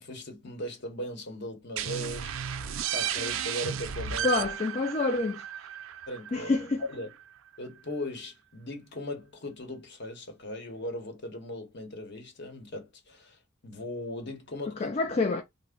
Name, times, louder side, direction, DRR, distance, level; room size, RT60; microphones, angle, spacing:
voice 1, 0.0-2.3 2.9-4.4 6.1-6.5 6.8-7.1 7.6-14.9, left 1 dB, 55° left, 1.0 m, -38 dB
sound 1, 1.8-7.2, right 9 dB, 90° right, 0.5 m, -34 dB
voice 2, 4.2-5.4 6.3-6.8 14.8-15.4, left 3 dB, 30° left, 0.3 m, -27 dB
3.3 x 2.1 x 3.7 m
head